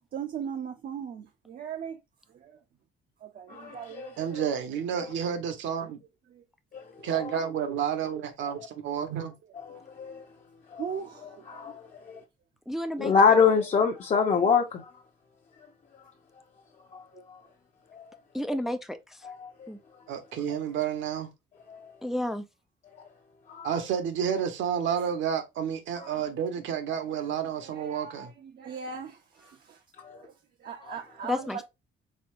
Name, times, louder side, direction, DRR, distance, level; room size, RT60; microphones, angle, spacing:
voice 1, 0.1-2.0 2.3-2.6 3.2-4.4 6.3-6.4 7.0-7.1 9.7-9.8 10.8-11.8 17.1-17.2 26.0-26.3 26.7-27.3 27.6-29.8 30.1-30.3 30.6-31.6, right 7 dB, 50° right, 0.7 m, -39 dB
voice 2, 3.5-4.1 6.7-6.8 9.7-10.2 10.7-10.8 11.5-12.2 13.0-14.8 17.9-18.0 19.6-19.7 21.7-21.8 23.5-23.7 30.0-30.2, left 6 dB, 35° left, 0.7 m, -24 dB
voice 3, 4.2-6.0 7.0-9.3 20.1-21.3 23.6-28.3, right 8 dB, 70° right, 1.2 m, -30 dB
voice 4, 12.7-13.3 18.3-19.3 19.7-19.8 22.0-22.5 31.2-31.6, equal, ahead, 0.4 m, -32 dB
4.3 x 3.8 x 2.5 m
cardioid pair, 145°, 20 cm